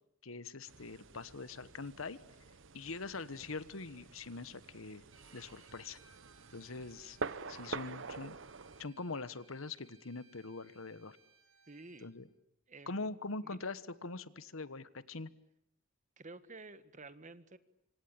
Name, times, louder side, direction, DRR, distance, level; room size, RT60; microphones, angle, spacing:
voice 1, 0.2-2.2 2.7-5.0 5.3-6.0 6.5-7.2 7.5-8.4 8.8-11.2 12.0-12.3 12.9-15.3, left 3 dB, 80° left, 15 dB, 1.3 m, -43 dB
sound 1, 0.7-8.8, right 4 dB, 65° right, 1.1 m, -47 dB
Bowed string instrument, 5.1-12.1, right 4 dB, 85° right, 7.6 m, -65 dB
voice 2, 11.7-12.1 12.7-13.0 13.4-13.6 16.2-17.6, right 3 dB, 40° right, 13 dB, 1.5 m, -51 dB
26.5 x 26.0 x 8.7 m, 0.79 s
head